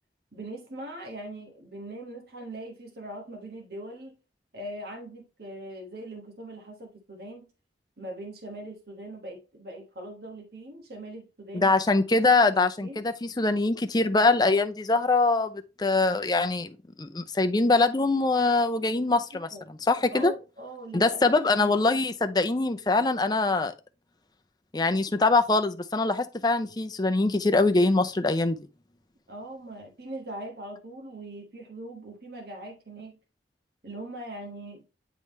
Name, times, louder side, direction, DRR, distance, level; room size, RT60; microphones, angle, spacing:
voice 1, 0.3-4.2 4.5-7.5 8.0-11.7 12.8-13.0 19.3-19.6 20.1-21.2 29.3-33.2 33.8-34.8, right 1 dB, 60° right, 1.3 m, -41 dB
voice 2, 11.5-19.5 19.9-20.3 20.9-23.7 24.7-28.6, left 3 dB, 20° left, 0.5 m, -23 dB
9.3 x 3.7 x 3.2 m
head